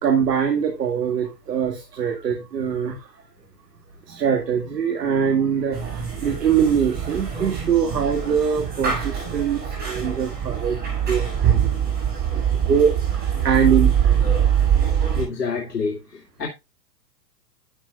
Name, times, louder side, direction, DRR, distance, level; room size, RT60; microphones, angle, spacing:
voice 1, 0.0-3.1 4.1-10.8 11.1-11.9 12.3-14.2 14.5-14.6, right 7 dB, 70° right, 2.4 m, -23 dB
sound 1, 5.7-15.3, right 8 dB, 20° right, 7.4 m, -23 dB
voice 2, 15.1-16.5, left 5 dB, 75° left, 2.4 m, -28 dB
11.5 x 9.2 x 2.4 m
hypercardioid pair, 135°, 49 cm